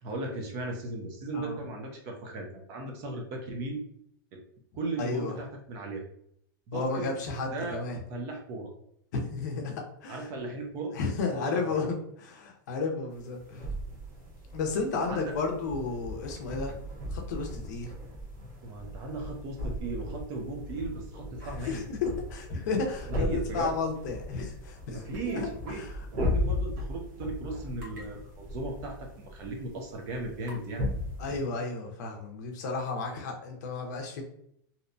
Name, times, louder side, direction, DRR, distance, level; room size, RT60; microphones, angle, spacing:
voice 1, 0.0-3.8 4.3-4.4 4.7-6.0 6.7-7.1 7.5-7.8 8.1-8.7 10.1-11.0 11.3-11.7 14.9-15.4 18.6-21.9 23.1-23.8 24.9-25.9 26.1-30.9, right 2 dB, 25° right, 2 dB, 0.4 m, -37 dB
voice 2, 5.0-5.3 6.7-8.0 9.1-9.7 10.0-10.2 10.9-13.6 14.5-16.7 17.1-17.9 21.4-25.0 25.3-25.5 25.8-26.0 31.2-34.2, left 4 dB, 55° left, 2 dB, 0.5 m, -33 dB
sound 1, 13.1-31.4, left 1 dB, 55° right, 1.0 m, -37 dB
sound 2, 25.1-25.4 25.7-25.8 27.8-28.1 28.6-28.7 29.4-29.5 30.4-30.7, left 2 dB, 75° right, 1.3 m, -48 dB
2.6 x 2.1 x 2.5 m, 0.72 s
supercardioid pair, 180°, 11 cm